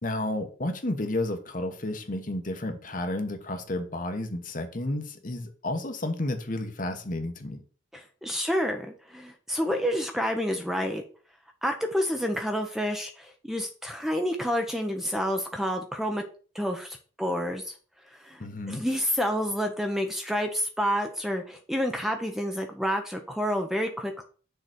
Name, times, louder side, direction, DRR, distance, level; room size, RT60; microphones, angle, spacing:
voice 1, 0.0-7.6 18.4-18.8, left 1 dB, 45° left, 1.1 m, -31 dB
voice 2, 7.9-11.0 11.6-16.2 16.5-17.6 18.1-18.4 18.7-24.2, equal, ahead, 0.7 m, -29 dB
6.6 x 4.0 x 6.1 m
head